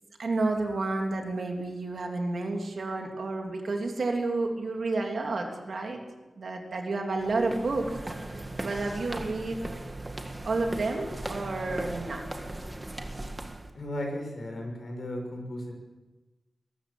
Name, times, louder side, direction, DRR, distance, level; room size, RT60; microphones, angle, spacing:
voice 1, 0.2-6.0 6.4-8.0 8.3-9.6 10.4-12.3, right 3 dB, 55° right, 2 dB, 3.1 m, -30 dB
sound 1, 7.2-13.7, right 1 dB, 15° right, 1.8 m, -38 dB
voice 2, 13.7-15.7, left 1 dB, 50° left, 2 dB, 6.2 m, -35 dB
22.0 x 13.5 x 8.6 m, 1.2 s
wide cardioid pair, 155°, 0 cm